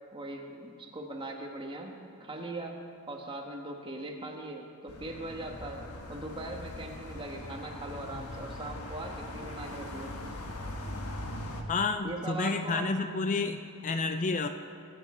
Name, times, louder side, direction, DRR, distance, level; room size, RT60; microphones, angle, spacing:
voice 1, 0.1-10.2 12.0-13.0, right 2 dB, 20° right, 1 dB, 1.3 m, -40 dB
sound 1, 4.9-11.6, left 1 dB, 85° left, 1.3 m, -41 dB
voice 2, 11.7-14.5, left 3 dB, 35° left, 8 dB, 0.4 m, -30 dB
21.0 x 8.4 x 4.3 m, 2.4 s
head